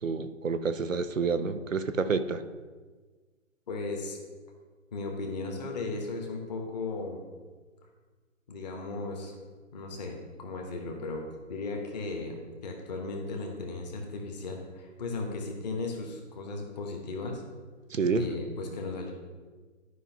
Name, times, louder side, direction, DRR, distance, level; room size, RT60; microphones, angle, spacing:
voice 1, 0.0-2.4 17.9-18.3, right 4 dB, 80° right, 11 dB, 0.7 m, -28 dB
voice 2, 3.7-4.2 4.9-7.2 8.5-9.3 9.7-17.4 18.2-19.1, left 3 dB, 35° left, 2 dB, 1.2 m, -36 dB
11.5 x 5.2 x 2.9 m, 1.4 s
figure-of-eight pair, 135°, 38 cm